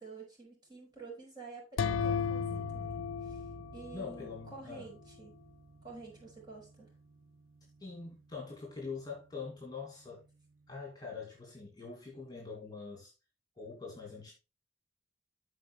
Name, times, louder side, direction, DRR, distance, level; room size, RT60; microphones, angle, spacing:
voice 1, 0.0-3.4 3.7-5.4 5.8-6.9, right 4 dB, 25° right, 5.5 m, -50 dB
sound 1, 1.8-4.5, left 7 dB, 90° left, 0.4 m, -35 dB
sound 2, 1.8-10.9, right 3 dB, 75° right, 0.8 m, -51 dB
voice 2, 3.9-4.9 7.8-10.2 10.7-13.1 13.5-14.3, left 4 dB, 20° left, 2.6 m, -44 dB
13.5 x 4.9 x 3.3 m
head